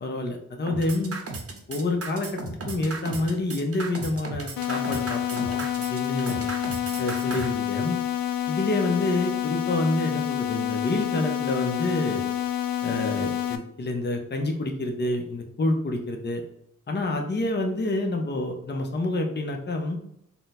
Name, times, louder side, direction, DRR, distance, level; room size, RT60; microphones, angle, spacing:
voice 1, 0.0-1.2 1.7-6.5 7.0-8.0 8.5-12.3 12.8-16.4 16.9-20.0, left 2 dB, 30° left, 3 dB, 0.7 m, -28 dB
sound 1, 0.7-7.5, right 3 dB, 45° right, 0.8 m, -35 dB
sound 2, 4.6-13.6, left 11 dB, 80° left, 0.5 m, -28 dB
3.9 x 2.2 x 4.0 m, 0.73 s
cardioid pair, 55°, 33 cm